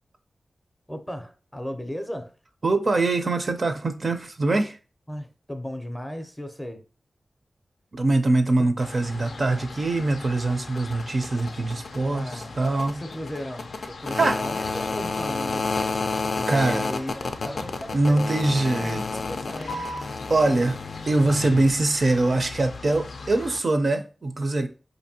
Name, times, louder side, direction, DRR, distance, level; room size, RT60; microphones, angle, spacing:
voice 1, 0.9-2.4 5.1-6.8 12.1-12.6 12.9-15.9 16.3-20.0, equal, 10° left, 0.5 m, -36 dB
voice 2, 2.6-4.8 7.9-12.3 12.6-13.0 14.1-14.4 16.5-16.8 17.9-19.0 20.3-20.8 21.1-24.7, right 2 dB, 55° right, 0.4 m, -23 dB
sound 1, 8.8-23.6, left 3 dB, 85° left, 0.4 m, -32 dB
4.9 x 2.6 x 2.7 m
wide cardioid pair, 85°, 0 cm